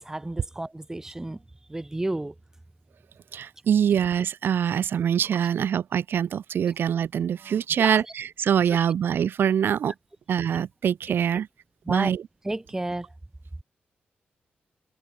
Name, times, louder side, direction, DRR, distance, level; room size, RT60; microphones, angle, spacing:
voice 1, 0.0-1.4 1.7-2.3 7.8-8.1 11.9-12.1 12.4-13.1, right 2 dB, 15° right, 3.6 m, -31 dB
voice 2, 3.3-9.9 10.3-11.5 11.9-12.2, right 8 dB, 80° right, 1.7 m, -24 dB
wide cardioid pair, 125°, 4 cm